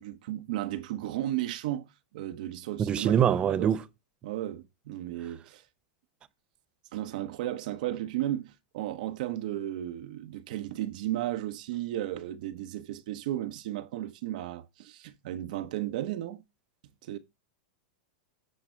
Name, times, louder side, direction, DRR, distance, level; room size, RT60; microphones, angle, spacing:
voice 1, 0.0-1.9 2.1-3.8 4.2-5.6 6.9-16.4 17.0-17.2, right 13 dB, 65° right, 0.9 m, -34 dB
voice 2, 2.8-3.8, right 9 dB, 20° right, 0.5 m, -24 dB
8.5 x 5.0 x 4.4 m
supercardioid pair, 145°, 5 cm